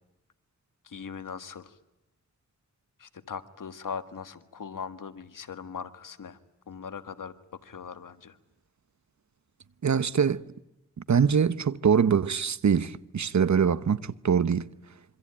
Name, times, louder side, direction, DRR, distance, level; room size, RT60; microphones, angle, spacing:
voice 1, 0.8-1.8 3.0-6.4 6.7-8.4, left 6 dB, 90° left, 1.6 m, -40 dB
voice 2, 9.8-10.4 11.1-14.7, right 7 dB, 65° right, 1.0 m, -23 dB
26.5 x 25.0 x 8.7 m
cardioid pair, 60°, 31 cm